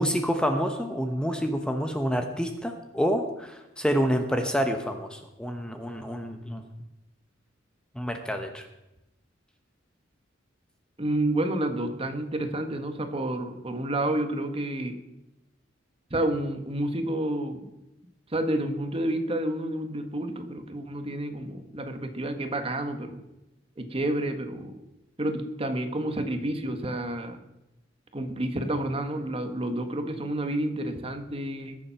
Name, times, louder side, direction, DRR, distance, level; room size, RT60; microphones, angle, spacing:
voice 1, 0.0-6.6 7.9-8.7, equal, 5° left, 5 dB, 0.9 m, -28 dB
voice 2, 11.0-15.0 16.1-17.7 18.3-23.2 23.8-24.8 25.2-27.4 28.1-31.8, right 1 dB, 30° right, 7 dB, 1.3 m, -30 dB
20.5 x 7.3 x 5.8 m, 0.94 s
head